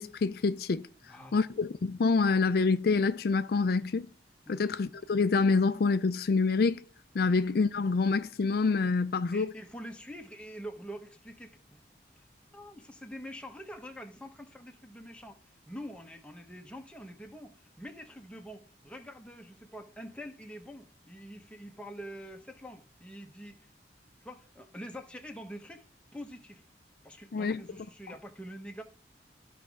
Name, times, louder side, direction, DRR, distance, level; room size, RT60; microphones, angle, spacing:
voice 1, 0.0-4.1 4.5-6.8 7.1-9.5 27.3-27.6, left 4 dB, 60° left, 0.4 m, -27 dB
voice 2, 1.0-1.4 4.5-4.6 9.3-11.8 12.2-12.3 12.5-15.4 15.7-23.6 24.2-25.8 26.1-26.6 27.0-28.8, equal, 5° left, 1.1 m, -45 dB
13.5 x 5.1 x 3.6 m
head